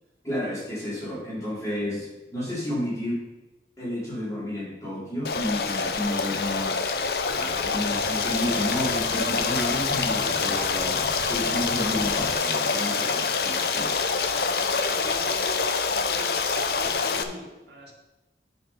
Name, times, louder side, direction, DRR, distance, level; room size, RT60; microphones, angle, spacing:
voice 1, 0.2-3.3 3.8-6.9 7.3-14.0, left 1 dB, 20° left, -8 dB, 3.4 m, -31 dB
Stream, 5.2-17.2, left 5 dB, 60° left, 0.6 m, -26 dB
sound 1, 7.2-12.3, equal, 45° left, 1.4 m, -43 dB
voice 2, 14.0-17.9, equal, 80° right, -2 dB, 2.2 m, -43 dB
9.8 x 5.2 x 5.7 m, 1.0 s
head